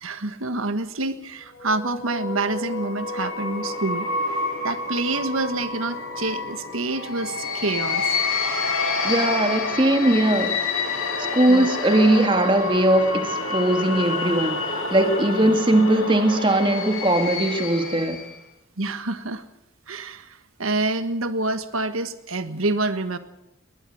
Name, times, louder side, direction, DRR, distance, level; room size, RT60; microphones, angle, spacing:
voice 1, 0.0-4.1 4.4-8.2 11.5-11.7 11.9-12.1 15.4-15.6 18.8-19.5 19.9-23.2, right 2 dB, 80° right, 1.5 m, -27 dB
sound 1, 1.6-18.4, left 3 dB, 85° left, 5.5 m, -28 dB
voice 2, 9.0-10.6 11.3-18.2, right 1 dB, 25° right, 1.8 m, -20 dB
21.5 x 20.0 x 6.4 m
head